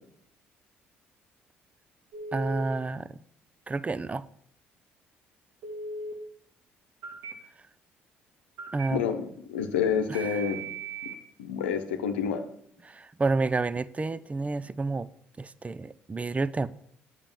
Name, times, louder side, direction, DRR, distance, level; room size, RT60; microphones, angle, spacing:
Telephone, 2.1-2.6 5.6-6.1 7.0-7.3 8.6-8.9 10.1-11.2, right 3 dB, 65° right, 2.0 m, -37 dB
voice 1, 2.3-3.2 3.7-4.2 8.7-9.0 10.1-10.4 12.8-15.1 15.4-16.7, right 3 dB, 25° right, 0.6 m, -30 dB
voice 2, 8.9-10.6 11.0-11.1 11.4-12.4, left 7 dB, 85° left, 0.9 m, -28 dB
8.8 x 6.7 x 7.1 m
hypercardioid pair, 50°, 6 cm